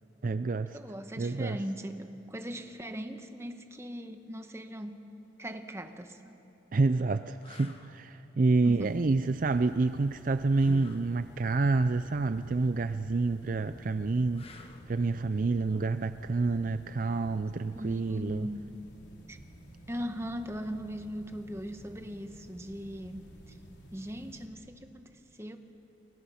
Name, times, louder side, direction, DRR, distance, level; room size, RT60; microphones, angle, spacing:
voice 1, 0.2-0.8 1.2-1.6 6.7-18.5, right 3 dB, 45° right, 12 dB, 0.4 m, -28 dB
voice 2, 0.7-5.0 5.4-6.4 8.6-8.9 17.7-18.7 19.3-19.4 19.9-23.6 23.9-25.6, equal, 15° right, 7 dB, 1.2 m, -39 dB
sound 1, 6.0-6.1 6.7-6.8 7.4-7.9 10.5-11.1 14.3-14.9 17.9-18.1, left 2 dB, 30° left, 1.4 m, -48 dB
sound 2, 8.7-24.5, right 1 dB, 70° left, 4.1 m, -52 dB
29.5 x 22.5 x 5.7 m, 2.9 s
head